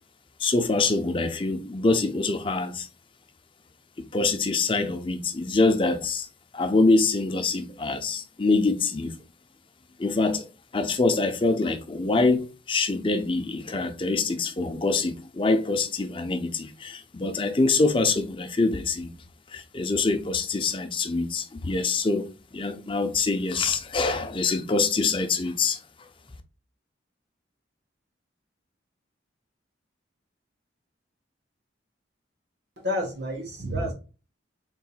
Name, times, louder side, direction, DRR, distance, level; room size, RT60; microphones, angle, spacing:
voice 1, 0.4-2.9 4.1-6.3 6.5-9.1 10.0-10.5 10.7-19.1 19.5-25.8, left 3 dB, 25° left, 0.5 m, -25 dB
voice 2, 32.8-33.9, equal, 65° right, 1.5 m, -29 dB
4.3 x 3.8 x 2.3 m
head